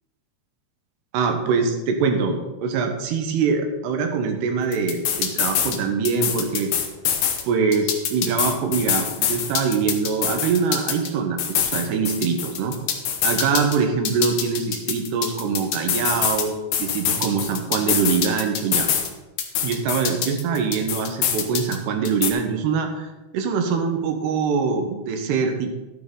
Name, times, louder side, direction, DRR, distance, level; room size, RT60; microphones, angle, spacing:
voice 1, 1.1-6.7 7.4-12.7 13.2-18.9 19.6-23.1 23.3-25.7, right 5 dB, 80° right, 5 dB, 3.2 m, -23 dB
sound 1, 4.7-5.8 6.1-7.4 7.7-11.1 11.4-13.8 14.1-16.4 16.7-19.1 19.4-21.8 22.1-22.3, left 8 dB, 80° left, 1.6 m, -24 dB
12.0 x 9.6 x 3.9 m, 1.1 s
omnidirectional pair, 4.8 m